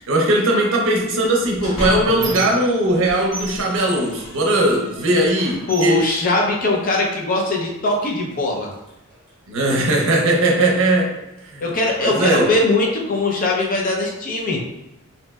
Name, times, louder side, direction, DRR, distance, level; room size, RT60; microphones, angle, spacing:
voice 1, 0.0-6.0 9.5-11.2 11.5-11.7 12.0-12.5, right 1 dB, 65° right, 0 dB, 0.6 m, -19 dB
Squeak, 1.2-3.0 3.3-5.0 5.4-7.1 7.8-8.0 8.3-9.3, right 2 dB, 20° right, 0.8 m, -35 dB
sound 1, 1.3-2.4 2.9-5.7, equal, 70° left, 1.3 m, -34 dB
voice 2, 5.7-8.7 11.6-14.6, left 2 dB, 40° left, 0 dB, 0.5 m, -20 dB
3.0 x 2.6 x 2.2 m, 0.95 s
head